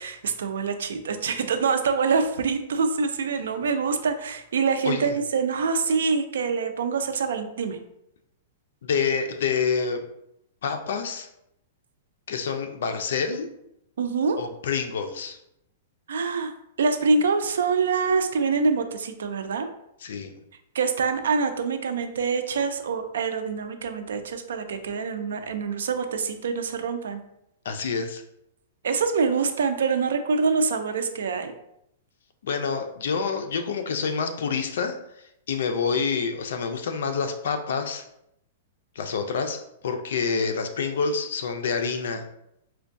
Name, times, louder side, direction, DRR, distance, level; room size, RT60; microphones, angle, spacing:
voice 1, 0.0-7.8 14.0-14.4 16.1-16.5 16.8-19.7 20.7-27.2 28.8-31.5, right 5 dB, 85° right, 7 dB, 0.4 m, -25 dB
voice 2, 4.8-5.1 8.8-10.0 10.6-11.3 12.3-13.5 14.4-15.4 20.0-20.4 27.6-28.2 32.4-35.0 35.5-38.0 39.0-42.3, left 5 dB, 70° left, 6 dB, 0.5 m, -27 dB
4.3 x 2.2 x 2.6 m, 0.79 s
hypercardioid pair, 165°, 0 cm